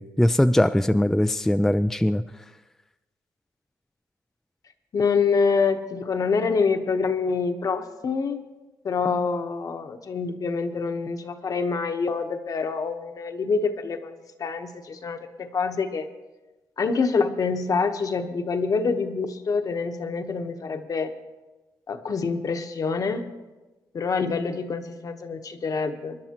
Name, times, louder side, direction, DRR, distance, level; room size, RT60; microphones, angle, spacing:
voice 1, 0.0-2.2, left 1 dB, 5° left, 9 dB, 0.3 m, -21 dB
voice 2, 4.9-8.5 8.8-16.1 16.8-21.1 21.9-23.2 23.9-26.2, left 5 dB, 50° left, 7 dB, 1.0 m, -26 dB
24.5 x 11.0 x 2.9 m, 1.1 s
cardioid pair, 100°, 8 cm